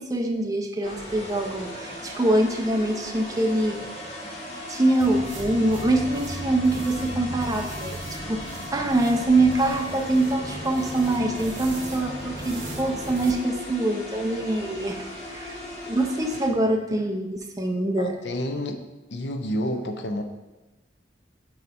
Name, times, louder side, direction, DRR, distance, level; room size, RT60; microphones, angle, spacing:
voice 1, 0.0-3.8 4.7-8.4 8.7-15.6 15.9-18.1, right 2 dB, 20° right, 2 dB, 0.5 m, -24 dB
sound 1, 0.8-16.5, left 1 dB, 30° left, 1.4 m, -37 dB
sound 2, 5.0-13.4, right 2 dB, 80° right, 1.0 m, -37 dB
voice 2, 18.0-18.8 19.1-20.2, equal, 65° left, 6 dB, 0.6 m, -29 dB
4.7 x 4.3 x 5.3 m, 1.1 s
head